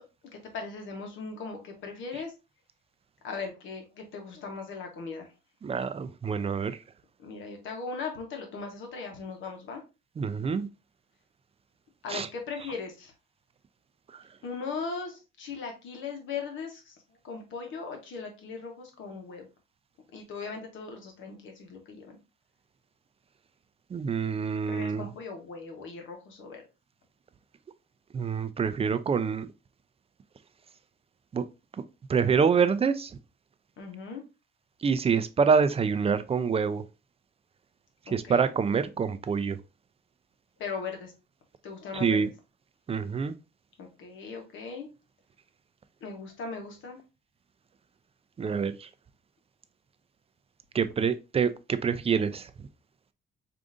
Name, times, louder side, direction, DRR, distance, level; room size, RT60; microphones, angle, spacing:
voice 1, 0.3-2.3 3.2-5.3 7.2-9.8 12.0-13.1 14.4-16.9 17.2-19.5 20.1-22.1 24.7-26.6 33.8-34.2 38.1-38.4 40.6-41.1 41.6-42.3 43.8-44.9 46.0-47.0, left 4 dB, 75° left, 1.1 m, -38 dB
voice 2, 5.6-6.8 10.2-10.7 12.1-12.3 23.9-25.1 28.1-29.5 31.3-31.4 32.1-33.2 34.8-36.8 38.1-39.6 41.9-42.3 42.9-43.4 48.4-48.9 50.7-52.5, right 6 dB, 30° right, 0.4 m, -26 dB
4.8 x 2.5 x 2.5 m
cardioid pair, 90°, 20 cm